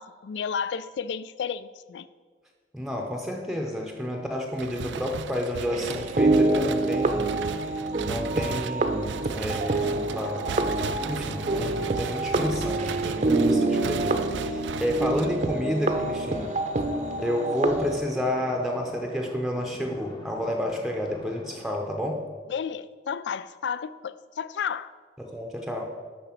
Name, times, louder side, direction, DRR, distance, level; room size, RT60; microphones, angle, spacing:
voice 1, 0.0-2.1 22.5-24.9, left 7 dB, 75° left, 16 dB, 0.4 m, -32 dB
voice 2, 2.7-7.7 8.0-10.5 11.1-16.5 17.2-22.2 25.2-25.9, equal, ahead, 2 dB, 0.7 m, -30 dB
sound 1, 4.6-15.8, right 6 dB, 80° right, 0.4 m, -37 dB
sound 2, 5.7-18.0, right 2 dB, 45° right, 0.7 m, -26 dB
sound 3, 9.0-21.7, left 1 dB, 30° left, 0.9 m, -46 dB
11.5 x 4.0 x 7.5 m, 1.5 s
head